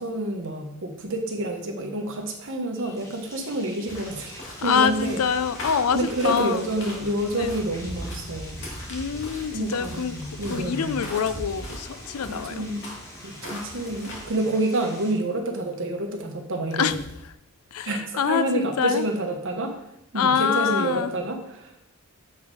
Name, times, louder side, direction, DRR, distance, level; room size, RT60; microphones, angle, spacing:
voice 1, 0.0-5.2 5.9-8.6 9.5-11.0 12.2-12.9 13.2-16.9 17.8-19.7 20.1-21.8, right 1 dB, 60° right, 3 dB, 1.2 m, -28 dB
sound 1, 2.7-15.1, left 1 dB, 15° left, 1.6 m, -46 dB
sound 2, 3.9-14.3, equal, 60° left, 2.1 m, -38 dB
voice 2, 4.6-6.7 7.3-7.6 8.9-10.2 10.5-12.6 16.7-17.0 17.7-19.1 20.1-21.1, left 6 dB, 80° left, 13 dB, 0.5 m, -25 dB
7.4 x 4.8 x 4.9 m, 0.80 s
head